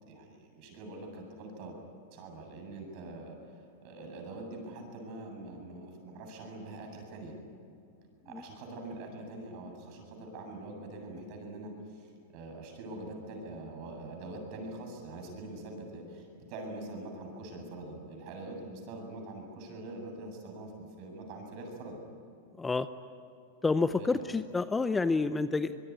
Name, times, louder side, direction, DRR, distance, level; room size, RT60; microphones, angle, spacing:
voice 1, 0.1-1.7 2.1-7.4 8.2-22.0 24.0-24.1, right 2 dB, 50° right, 3 dB, 7.9 m, -44 dB
voice 2, 22.6-22.9 23.6-25.9, left 3 dB, 10° left, 11 dB, 0.7 m, -29 dB
24.5 x 22.0 x 9.8 m, 2.6 s
supercardioid pair, 140°, 0 cm